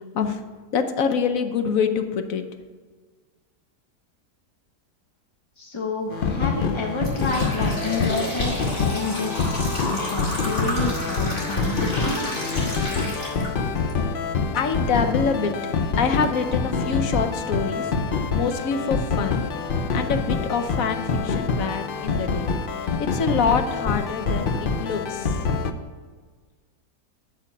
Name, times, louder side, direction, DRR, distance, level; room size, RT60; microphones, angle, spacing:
voice 1, 0.7-2.4 14.5-15.5 16.0-19.4 19.9-22.5 23.0-25.4, left 6 dB, 60° left, 8 dB, 1.1 m, -25 dB
voice 2, 5.6-12.2, left 3 dB, 25° left, 0 dB, 0.6 m, -30 dB
sound 1, 6.1-25.7, left 4 dB, 85° left, 0.4 m, -26 dB
sound 2, 6.1-6.3 6.8-13.9 14.4-14.5 15.3-15.4 15.9-16.0 16.5-16.7, left 1 dB, 45° left, 2.6 m, -31 dB
8.7 x 6.7 x 7.2 m, 1.5 s
omnidirectional pair, 1.8 m